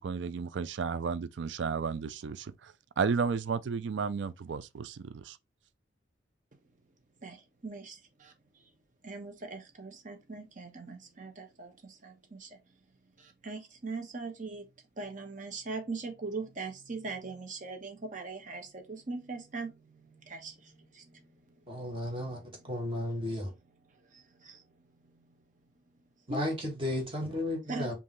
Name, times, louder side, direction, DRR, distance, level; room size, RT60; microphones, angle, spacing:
voice 1, 0.0-5.4, right 5 dB, 75° right, 0.4 m, -33 dB
voice 2, 7.2-8.3 9.0-12.6 13.2-14.7 15.0-22.7 24.1-24.6 25.0-25.4 26.3-26.4 27.7-27.9, right 3 dB, 45° right, 1.1 m, -41 dB
voice 3, 21.7-22.4 22.7-23.5 26.3-27.9, left 1 dB, 30° right, 1.7 m, -33 dB
5.3 x 2.8 x 3.1 m
head